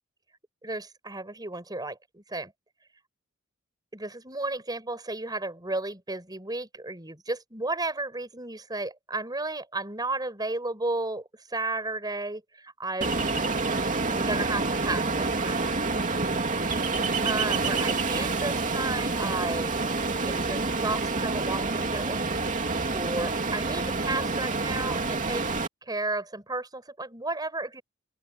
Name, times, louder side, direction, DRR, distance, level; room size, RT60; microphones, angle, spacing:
voice 1, 0.6-2.5 3.9-13.2 14.1-15.7 17.2-19.8 20.2-22.2 22.9-25.5 25.8-27.8, right 2 dB, 20° right, 5.8 m, -33 dB
Ocean, 13.0-25.7, right 3 dB, 35° right, 2.7 m, -28 dB
open air
head